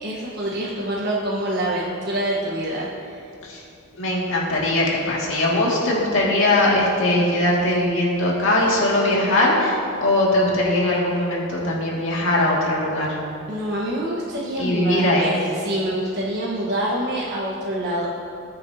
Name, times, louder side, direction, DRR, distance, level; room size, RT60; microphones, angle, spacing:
voice 1, 0.0-3.2 13.5-18.1, right 1 dB, 50° right, -5 dB, 1.2 m, -26 dB
voice 2, 3.9-13.2 14.6-15.4, left 1 dB, 60° left, -4 dB, 2.1 m, -20 dB
19.5 x 6.7 x 2.8 m, 2.7 s
head